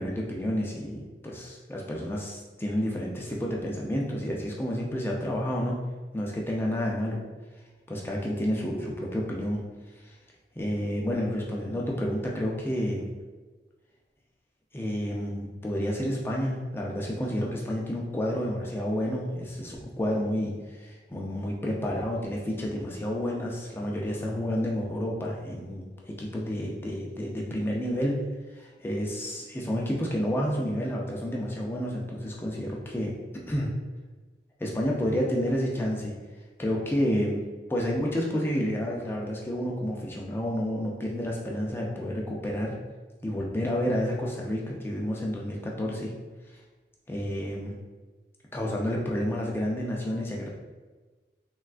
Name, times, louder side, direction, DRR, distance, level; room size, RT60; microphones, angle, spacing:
voice 1, 0.0-5.8 6.1-7.2 7.9-9.6 10.0-10.2 10.6-13.1 14.7-28.2 28.5-33.1 33.5-33.7 34.6-36.1 36.6-37.4 37.7-42.8 43.2-46.1 47.1-47.7 48.5-50.5, equal, 15° left, -2 dB, 0.4 m, -30 dB
3.4 x 2.3 x 2.4 m, 1.3 s
head